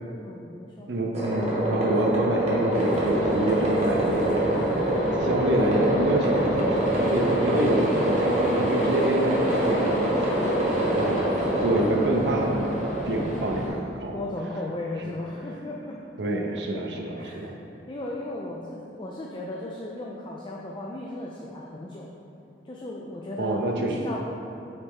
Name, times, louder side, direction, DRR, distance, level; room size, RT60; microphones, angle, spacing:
voice 1, 0.2-0.9 10.8-11.5 13.2-13.3 14.1-16.0 16.7-16.8 17.2-17.5 17.9-22.1 22.6-24.3, left 1 dB, 25° left, -2 dB, 0.5 m, -36 dB
voice 2, 0.9-4.6 5.2-10.1 10.9-11.3 11.6-14.2 16.2-17.5 23.4-24.1, right 1 dB, 75° right, 1 dB, 0.7 m, -27 dB
sound 1, 1.1-13.8, right 1 dB, 40° right, 1.3 m, -25 dB
sound 2, 2.7-13.7, equal, 45° left, 1.4 m, -36 dB
7.9 x 4.1 x 3.7 m, 2.7 s
head